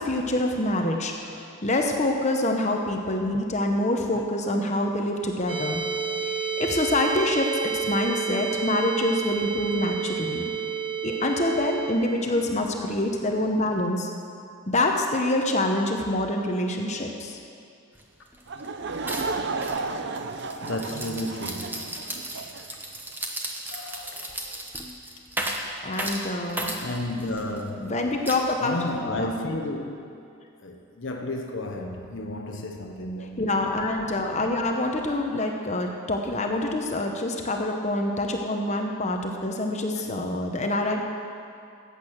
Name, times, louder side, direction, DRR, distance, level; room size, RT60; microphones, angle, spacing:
voice 1, 0.0-1.1 1.6-5.8 6.2-10.5 11.0-14.1 14.7-17.4 25.8-26.8 27.8-28.8 29.1-29.3 33.4-41.0, left 1 dB, 30° left, 2 dB, 0.8 m, -26 dB
sound 1, 5.5-11.9, right 6 dB, 25° right, 1.6 m, -30 dB
voice 2, 12.2-12.7 19.6-20.0 20.6-22.0 23.7-24.6 26.8-27.9 28.6-30.2 30.6-33.5 39.9-40.1, left 1 dB, 55° left, 2 dB, 0.9 m, -33 dB
sound 2, 17.9-18.0 18.3-18.7 19.1-27.6 28.3-28.9, right 1 dB, 10° right, 0.9 m, -35 dB
Laughter / Crowd, 18.5-22.7, right 3 dB, 50° right, 0.6 m, -33 dB
14.5 x 8.3 x 6.3 m, 2.5 s
head